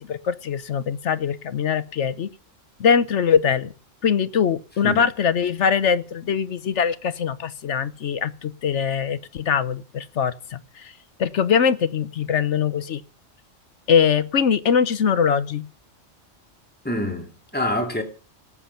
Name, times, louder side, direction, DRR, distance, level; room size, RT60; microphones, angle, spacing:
voice 1, 0.1-2.3 2.8-3.7 4.0-10.9 11.2-13.0 13.9-15.7, left 7 dB, 65° left, 1.1 m, -22 dB
voice 2, 16.8-18.0, left 1 dB, 5° left, 2.6 m, -26 dB
18.0 x 7.4 x 5.8 m
omnidirectional pair, 1.4 m